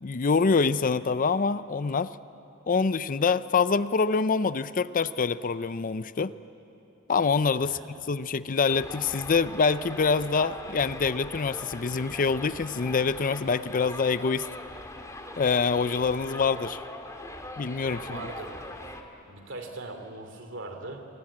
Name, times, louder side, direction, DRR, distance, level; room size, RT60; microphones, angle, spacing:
voice 1, 0.0-2.1 2.7-6.3 7.1-7.8 8.1-14.5 15.4-16.8 17.6-18.2, left 5 dB, 40° left, 15 dB, 0.5 m, -25 dB
Subway metro underground, 8.7-19.0, left 1 dB, 15° left, 1.8 m, -41 dB
voice 2, 17.9-18.6 19.3-21.1, right 2 dB, 60° right, 6 dB, 2.8 m, -40 dB
27.5 x 22.5 x 8.7 m, 3.0 s
head